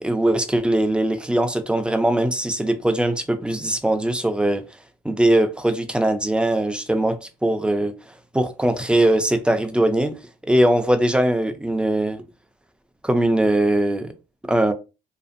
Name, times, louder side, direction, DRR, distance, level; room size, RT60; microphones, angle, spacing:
voice 1, 0.0-4.6 5.0-7.9 8.3-10.1 10.5-12.2 13.0-14.1 14.5-14.7, right 1 dB, 5° right, 0.3 m, -20 dB
2.5 x 2.4 x 2.5 m
cardioid pair, 110°, 17 cm